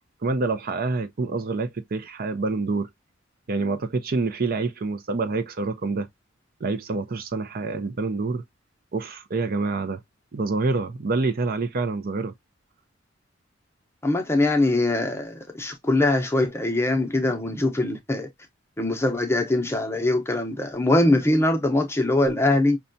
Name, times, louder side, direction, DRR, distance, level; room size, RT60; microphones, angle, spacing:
voice 1, 0.2-2.9 3.5-6.1 6.6-8.4 8.9-10.0 10.3-12.3, right 3 dB, 50° right, 0.5 m, -27 dB
voice 2, 14.0-18.3 18.8-22.8, left 2 dB, 15° left, 0.7 m, -22 dB
5.4 x 2.3 x 2.6 m
head